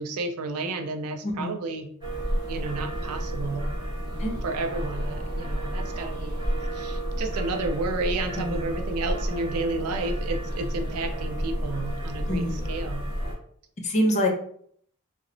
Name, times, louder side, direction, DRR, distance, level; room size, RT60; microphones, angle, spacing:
voice 1, 0.0-1.9 2.5-3.6 4.4-6.4 6.7-13.1, right 3 dB, 80° right, 6 dB, 0.4 m, -31 dB
sound 1, 2.0-13.3, equal, 20° right, 1.0 m, -31 dB
voice 2, 12.3-12.6 13.8-14.3, equal, 30° left, 2 dB, 0.4 m, -25 dB
2.9 x 2.0 x 2.5 m, 0.63 s
head